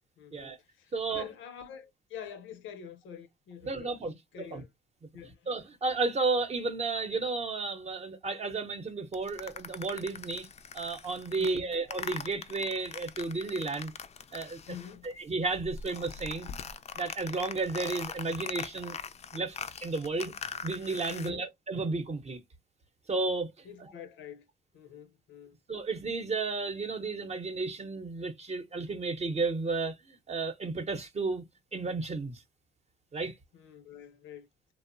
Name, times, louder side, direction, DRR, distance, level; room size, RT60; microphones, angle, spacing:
voice 1, 0.2-4.7 5.1-5.5 11.4-11.7 14.7-15.1 21.1-21.5 23.6-24.4 24.7-25.6 33.5-34.5, left 8 dB, 80° left, 0.6 m, -46 dB
voice 2, 0.9-1.3 3.6-4.1 4.5-4.6 5.5-10.5 10.7-13.9 14.3-14.6 15.0-16.5 16.9-19.0 19.3-20.3 20.6-22.4 23.1-23.6 25.7-31.4 31.7-32.4 33.1-33.3, right 3 dB, 35° right, 0.7 m, -33 dB
sound 1, 9.1-15.2 15.4-21.3, left 6 dB, 35° left, 0.3 m, -42 dB
2.8 x 2.0 x 2.4 m
cardioid pair, 90°, 20 cm